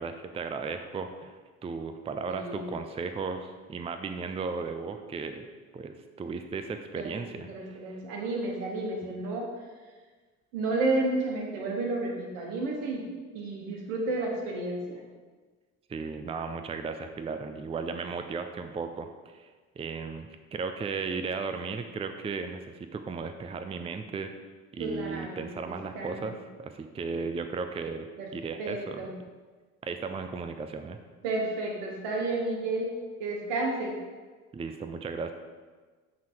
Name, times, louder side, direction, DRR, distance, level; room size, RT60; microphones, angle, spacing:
voice 1, 0.0-5.4 5.7-8.0 15.9-19.5 19.8-24.3 24.7-28.1 28.3-29.1 29.8-31.0 34.5-35.3, right 4 dB, 15° right, 7 dB, 0.5 m, -35 dB
voice 2, 2.2-2.7 6.9-9.5 10.5-13.0 13.3-15.0 24.8-26.2 28.2-28.3 28.6-29.1 31.2-32.9 33.2-33.9, right 2 dB, 75° right, 0 dB, 1.5 m, -31 dB
7.4 x 3.8 x 4.6 m, 1.4 s
hypercardioid pair, 65°, 37 cm